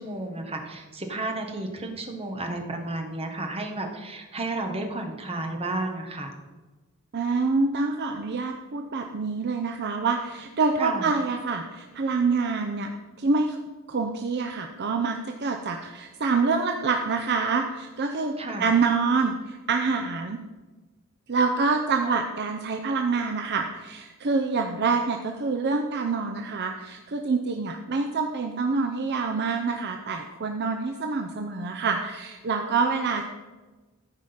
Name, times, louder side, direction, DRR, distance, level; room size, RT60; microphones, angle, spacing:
voice 1, 0.0-6.3 10.8-11.1 18.4-18.7, right 2 dB, 25° right, 3 dB, 1.3 m, -32 dB
voice 2, 7.1-12.9 13.2-13.6 13.9-20.4 21.3-33.2, right 4 dB, 50° right, 4 dB, 0.6 m, -26 dB
13.5 x 4.9 x 5.7 m, 1.2 s
head